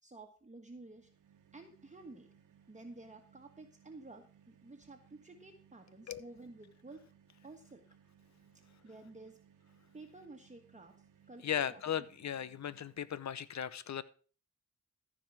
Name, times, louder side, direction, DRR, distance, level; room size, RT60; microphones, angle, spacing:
voice 1, 0.0-1.1 1.5-2.3 2.7-7.1 7.4-7.9 8.5-9.4 9.9-11.8, right 2 dB, 25° right, 3 dB, 1.4 m, -52 dB
sound 1, 0.8-13.4, right 8 dB, 85° right, 1.4 m, -66 dB
voice 2, 11.4-14.0, left 9 dB, 60° left, 16 dB, 0.8 m, -37 dB
14.0 x 5.0 x 5.9 m, 0.40 s
cardioid pair, 65°, 31 cm